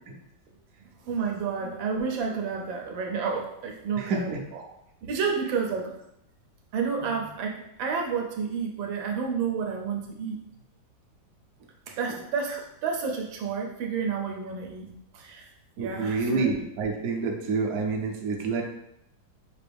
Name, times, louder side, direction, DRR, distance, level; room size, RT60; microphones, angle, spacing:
voice 1, 1.0-4.6 5.0-5.9 6.7-10.4 11.9-14.9 15.1-15.5 15.8-16.5, right 5 dB, 80° right, 1 dB, 1.4 m, -30 dB
voice 2, 3.9-4.4 12.1-12.2 15.8-18.6, right 4 dB, 65° right, 1 dB, 1.0 m, -28 dB
5.1 x 2.6 x 3.4 m, 0.80 s
omnidirectional pair, 2.1 m